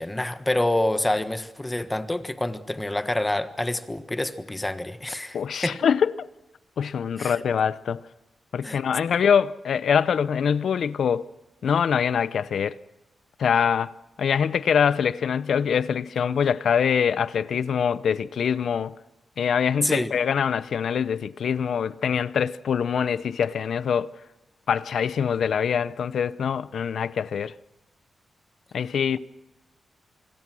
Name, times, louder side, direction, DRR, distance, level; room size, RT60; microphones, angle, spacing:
voice 1, 0.0-5.8 7.2-7.4 8.6-8.8 19.8-20.1, left 1 dB, 15° left, 1.4 m, -27 dB
voice 2, 5.3-6.1 6.8-8.0 8.5-11.3 11.6-12.8 13.4-13.9 14.2-18.9 19.4-24.1 24.7-27.5 28.7-29.2, left 7 dB, 75° left, 0.7 m, -24 dB
27.0 x 21.5 x 6.3 m
wide cardioid pair, 110°, 0 cm